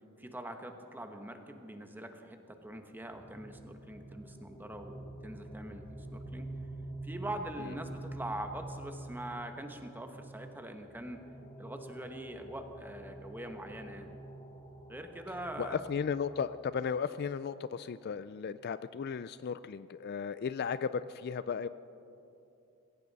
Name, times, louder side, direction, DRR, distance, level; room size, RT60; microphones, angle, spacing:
voice 1, 0.2-6.5 7.0-11.2 11.6-14.1 14.9-15.8, right 1 dB, 10° right, 6 dB, 1.1 m, -43 dB
sound 1, 2.7-17.4, right 1 dB, 25° left, 3.9 m, -47 dB
voice 2, 15.6-21.7, left 6 dB, 50° left, 14 dB, 0.3 m, -35 dB
20.5 x 17.5 x 4.1 m, 2.8 s
head